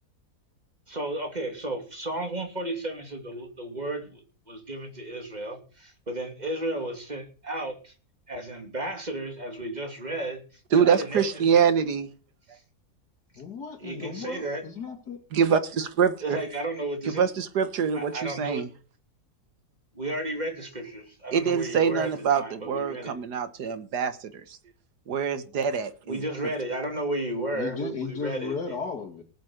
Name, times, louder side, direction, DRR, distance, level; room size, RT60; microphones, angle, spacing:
voice 1, 0.9-4.2 4.5-7.9 8.3-10.4 10.7-11.4 13.8-14.6 16.2-17.2 17.9-18.7 19.9-23.1 26.1-28.6, right 1 dB, 25° right, 4 dB, 3.0 m, -33 dB
voice 2, 10.7-12.1 15.3-16.4 17.0-18.7 21.3-24.6 25.1-26.2, right 7 dB, 85° right, 11 dB, 1.9 m, -25 dB
voice 3, 13.4-15.2 27.5-29.2, left 5 dB, 80° left, 2 dB, 2.5 m, -35 dB
18.5 x 7.7 x 6.6 m, 0.38 s
omnidirectional pair, 1.7 m